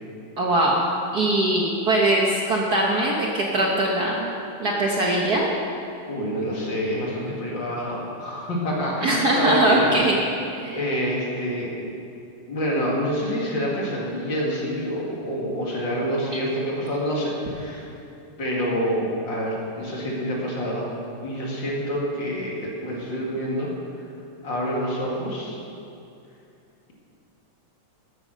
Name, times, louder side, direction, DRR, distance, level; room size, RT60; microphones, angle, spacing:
voice 1, 0.4-4.3 4.6-5.5 9.0-10.2 10.6-10.8, right 1 dB, 75° right, -2 dB, 0.8 m, -21 dB
voice 2, 6.0-9.9 10.7-11.7 12.5-17.9 18.4-20.9 21.2-23.7 24.4-25.6, equal, 40° left, -4 dB, 2.6 m, -27 dB
12.5 x 9.1 x 6.5 m, 2.6 s
omnidirectional pair, 3.4 m